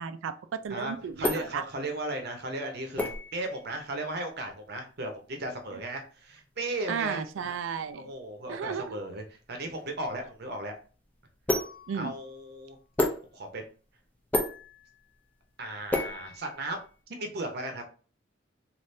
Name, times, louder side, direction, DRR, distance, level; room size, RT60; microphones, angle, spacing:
voice 1, 0.0-1.6 6.9-8.1 8.5-9.0 11.9-12.1, right 6 dB, 80° right, 12 dB, 0.4 m, -34 dB
sound 1, 0.6-17.0, left 2 dB, 10° left, 0.4 m, -35 dB
voice 2, 0.7-7.5 7.9-10.7 11.9-12.8 13.3-13.6 15.6-16.8 17.1-17.8, right 1 dB, 55° right, 4 dB, 0.7 m, -36 dB
3.3 x 2.5 x 2.6 m, 0.38 s
head